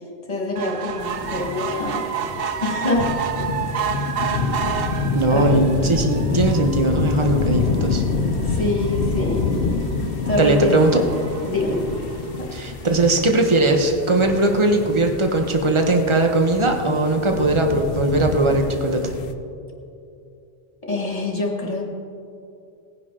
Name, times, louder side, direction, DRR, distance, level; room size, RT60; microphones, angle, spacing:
voice 1, 0.3-2.1 2.6-3.2 3.7-3.8 5.3-5.6 8.4-9.5 10.3-11.1 11.4-11.9 12.4-12.5 20.8-21.9, left 2 dB, 35° left, -1 dB, 2.1 m, -25 dB
sound 1, 0.6-13.2 13.7-13.8 14.1-14.2 14.5-14.6, right 7 dB, 65° right, 0.8 m, -31 dB
sound 2, 1.0-19.3, left 4 dB, 65° left, 0.9 m, -27 dB
voice 2, 5.1-8.0 10.4-11.0 12.5-19.1, right 2 dB, 30° right, 4 dB, 1.1 m, -19 dB
18.5 x 10.0 x 3.8 m, 2.7 s
omnidirectional pair, 1.1 m